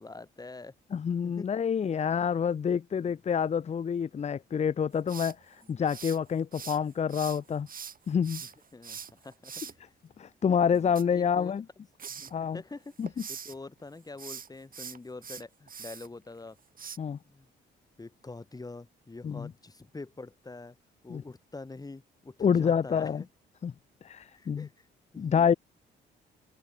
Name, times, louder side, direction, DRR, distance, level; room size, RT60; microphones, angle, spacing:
voice 1, 0.0-0.7 1.2-1.5 5.6-5.8 8.7-9.9 10.7-11.5 12.1-16.6 17.2-17.5 18.0-20.8 21.0-23.3 24.3-24.9 25.1-25.5, left 3 dB, 20° left, 2.2 m, -45 dB
voice 2, 0.9-7.7 8.1-8.4 10.2-11.6 12.3-12.6 13.0-13.1 17.0-17.2 19.2-19.5 21.1-21.2 22.4-23.2 23.6-23.7 24.0-24.7 25.2-25.5, left 7 dB, 35° left, 0.6 m, -27 dB
sound 1, 5.1-6.8 7.1-9.7 10.8-11.7 12.0-12.3 12.8-13.6 14.1-16.1 16.8-17.0, right 6 dB, 45° right, 4.3 m, -43 dB
cardioid pair, 90°, 20 cm